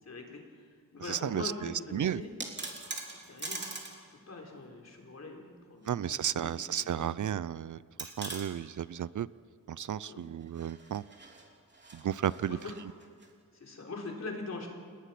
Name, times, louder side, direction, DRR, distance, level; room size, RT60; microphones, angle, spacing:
voice 1, 0.0-2.3 3.2-3.7 4.1-7.2 10.1-10.2 12.5-12.8 13.5-14.7, left 3 dB, 50° left, 1 dB, 4.3 m, -43 dB
voice 2, 1.1-2.2 5.9-9.3 9.7-11.0 11.9-12.6, right 10 dB, 60° right, 18 dB, 0.5 m, -33 dB
sound 1, 2.2-4.0 4.3-4.4 5.8-6.6 6.9-7.0 8.0-8.5 10.4-13.3, right 2 dB, 30° right, 3.3 m, -43 dB
29.5 x 19.5 x 6.0 m, 2.1 s
wide cardioid pair, 140°, 34 cm